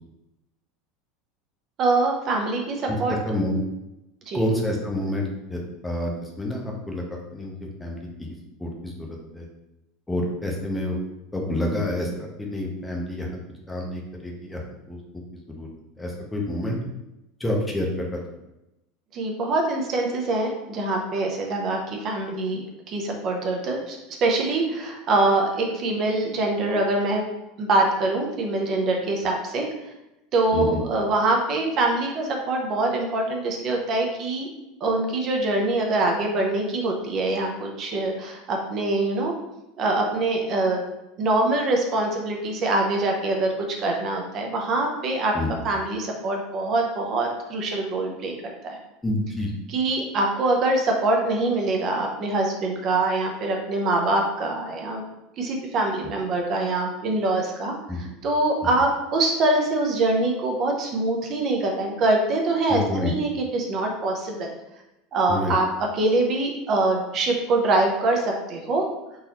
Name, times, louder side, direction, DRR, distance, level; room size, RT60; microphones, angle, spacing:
voice 1, 1.8-3.1 4.3-4.4 19.1-27.3 27.6-29.6 30.3-34.5 34.8-39.4 39.8-40.8 41.2-43.5 43.8-45.3 45.6-48.3 48.6-48.8 49.7-55.0 55.4-64.5 65.1-65.7 65.9-68.8, right 2 dB, 40° right, 1 dB, 0.6 m, -24 dB
voice 2, 2.9-3.6 4.3-5.2 5.5-7.5 7.8-8.3 8.6-9.5 10.1-11.0 11.3-13.3 13.7-14.6 14.9-15.2 15.6-15.7 16.0-16.8 17.4-18.2 30.5-30.8 45.3-45.5 49.0-49.5 57.9-58.1 62.7-63.1 65.3-65.6, left 1 dB, 10° left, -1 dB, 0.6 m, -28 dB
3.8 x 2.6 x 2.9 m, 0.93 s
supercardioid pair, 145°, 0 cm